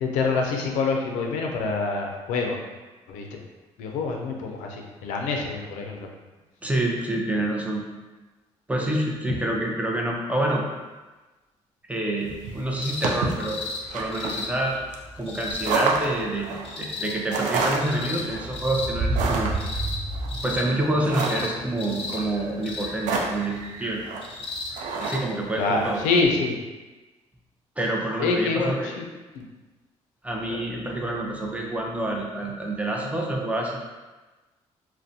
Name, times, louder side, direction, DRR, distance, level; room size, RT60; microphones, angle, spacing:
voice 1, 0.0-2.6 3.1-3.4 3.8-6.1 25.6-26.5 28.2-29.0 29.3-29.4 30.5-30.6, left 4 dB, 90° left, 1 dB, 0.4 m, -26 dB
voice 2, 6.6-7.9 8.7-10.6 11.9-13.6 13.9-14.7 15.2-19.5 20.4-24.0 25.0-26.0 27.8-28.9 30.2-33.8, right 1 dB, 10° right, -1 dB, 0.5 m, -27 dB
sound 1, 12.3-26.0, right 3 dB, 75° right, 0.4 m, -29 dB
sound 2, 12.8-13.1 13.4-13.8 14.1-14.5 15.3-15.7 16.6-17.1 17.8-18.2 18.5-18.9 19.5-20.0 20.3-20.6 21.1-21.5 21.8-22.2 22.6-22.9 24.2-24.7 25.0-25.2 26.2-26.3, left 4 dB, 45° left, 0.6 m, -34 dB
2.4 x 2.1 x 2.6 m, 1.2 s
supercardioid pair, 70°, 13 cm